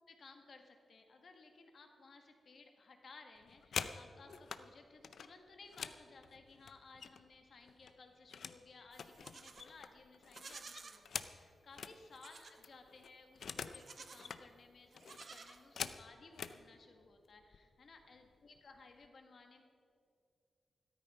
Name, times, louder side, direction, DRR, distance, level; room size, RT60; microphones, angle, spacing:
voice 1, 0.1-13.8 14.1-19.6, left 4 dB, 50° left, 4 dB, 1.6 m, -59 dB
sound 1, 3.4-4.6 5.0-7.4 7.7-8.6 8.9-12.0 12.3-12.4 12.6-13.8 14.1-14.4 15.0-16.6 17.4-17.6 17.9-18.3 18.6-19.1, left 6 dB, 70° left, 0.5 m, -46 dB
Livestock farm animals working animals, 8.9-9.7 10.2-11.0 12.1-12.6 13.7-14.4 14.9-16.0, right 4 dB, 45° right, 0.8 m, -54 dB
13.5 x 13.0 x 5.6 m, 2.4 s
wide cardioid pair, 175°, 0 cm